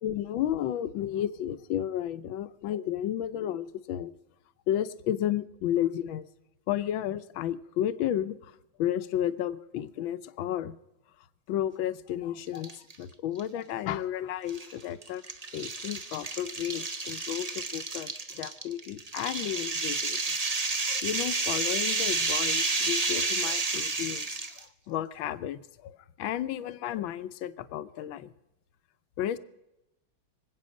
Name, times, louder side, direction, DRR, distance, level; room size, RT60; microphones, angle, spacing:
voice 1, 0.0-4.1 4.7-6.2 6.7-10.8 11.5-15.2 15.5-20.2 20.9-28.3 29.2-29.4, left 11 dB, 80° left, 14 dB, 1.5 m, -32 dB
sound 1, 12.5-13.0 13.4-13.5 14.5-24.6, right 3 dB, 30° right, 0.7 m, -31 dB
25.0 x 8.5 x 6.4 m, 0.91 s
omnidirectional pair, 2.1 m